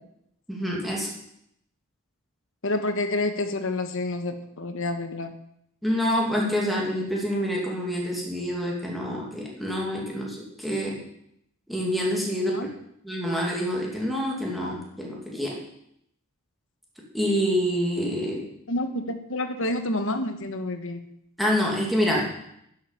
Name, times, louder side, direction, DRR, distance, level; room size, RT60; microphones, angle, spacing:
voice 1, 0.5-1.1 5.8-11.0 11.7-12.5 13.0-15.6 17.1-18.4 21.4-22.3, equal, ahead, -3 dB, 2.5 m, -27 dB
voice 2, 2.6-5.3 12.5-12.7 18.7-21.0, left 2 dB, 65° left, 7 dB, 1.3 m, -28 dB
10.5 x 8.1 x 7.2 m, 0.75 s
head